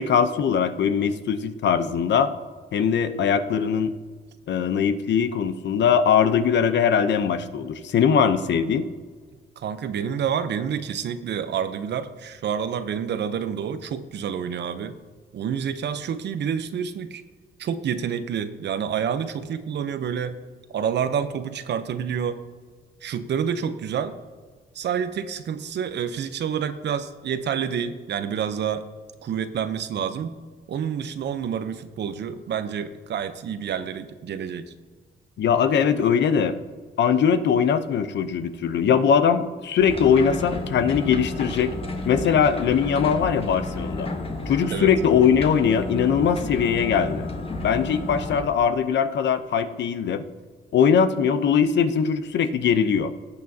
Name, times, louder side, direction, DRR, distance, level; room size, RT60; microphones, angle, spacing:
voice 1, 0.0-2.3 2.7-3.9 4.5-8.9 35.4-36.6 37.0-41.7 42.1-44.1 44.5-47.3 47.6-50.2 50.7-53.1, left 7 dB, 65° left, 10 dB, 0.8 m, -21 dB
voice 2, 9.6-15.0 15.3-17.2 17.6-20.4 20.7-22.4 23.0-24.2 24.7-28.9 29.2-30.3 30.7-34.7 44.7-44.9, right 8 dB, 60° right, 11 dB, 0.7 m, -28 dB
sound 1, 39.8-48.4, left 2 dB, 30° left, 1.2 m, -32 dB
18.0 x 6.6 x 2.8 m, 1.5 s
cardioid pair, 90°, 20 cm